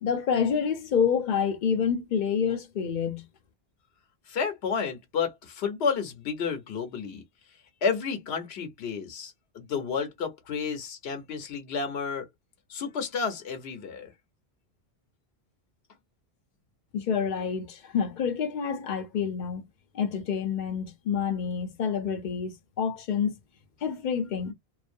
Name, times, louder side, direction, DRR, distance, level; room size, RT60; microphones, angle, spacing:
voice 1, 0.0-3.3 16.9-19.6 19.9-23.3 23.8-24.5, left 7 dB, 60° left, 0.6 m, -28 dB
voice 2, 4.3-7.2 7.8-12.3 12.7-14.1, left 5 dB, 90° left, 0.9 m, -31 dB
2.4 x 2.0 x 2.5 m
omnidirectional pair, 1.0 m